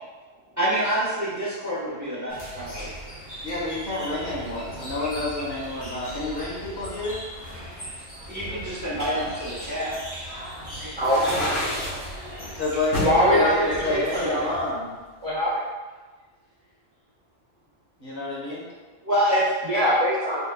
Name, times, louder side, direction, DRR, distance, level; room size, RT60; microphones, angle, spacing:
voice 1, 0.6-2.9 8.3-10.0 19.0-19.8, equal, 15° right, -7 dB, 0.9 m, -26 dB
sound 1, 2.3-14.8, equal, 20° left, 0.8 m, -38 dB
voice 2, 3.4-7.2 12.6-14.9 18.0-18.6, left 2 dB, 50° left, -6 dB, 1.3 m, -28 dB
voice 3, 10.8-11.2 13.0-14.6 15.2-15.6 19.7-20.5, equal, 35° right, -7 dB, 0.5 m, -23 dB
sound 2, 11.0-12.1 12.9-13.2 13.8-14.9, left 1 dB, 80° left, 1.9 m, -28 dB
4.9 x 3.4 x 2.2 m, 1.3 s
omnidirectional pair, 1.2 m